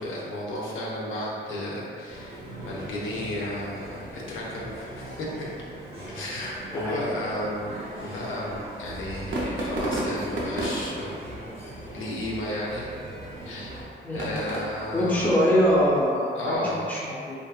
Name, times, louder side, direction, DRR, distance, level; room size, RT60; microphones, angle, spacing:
voice 1, 0.0-5.5 6.1-11.1 11.9-12.9 13.4-13.9 14.1-15.4 16.4-16.9, left 1 dB, 90° left, -5 dB, 0.6 m, -33 dB
sound 1, 2.1-13.8, right 1 dB, 30° right, 0.7 m, -41 dB
sound 2, 8.8-16.1, right 1 dB, 80° right, 0.5 m, -35 dB
voice 2, 14.9-16.6 16.9-17.3, equal, 10° left, -7 dB, 0.5 m, -23 dB
2.7 x 2.3 x 2.3 m, 2.3 s
wide cardioid pair, 145°, 20 cm